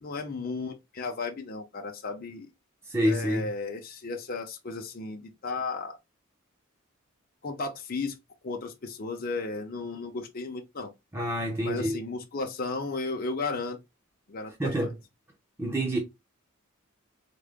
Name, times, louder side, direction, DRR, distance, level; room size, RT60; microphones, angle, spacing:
voice 1, 0.0-2.5 3.0-6.0 7.4-8.1 8.4-10.9 11.6-13.8 14.3-14.9, left 3 dB, 45° left, 0.6 m, -34 dB
voice 2, 2.9-3.5 11.1-12.0 14.6-14.9 15.6-16.0, equal, 10° right, 0.7 m, -27 dB
3.7 x 2.1 x 3.4 m
head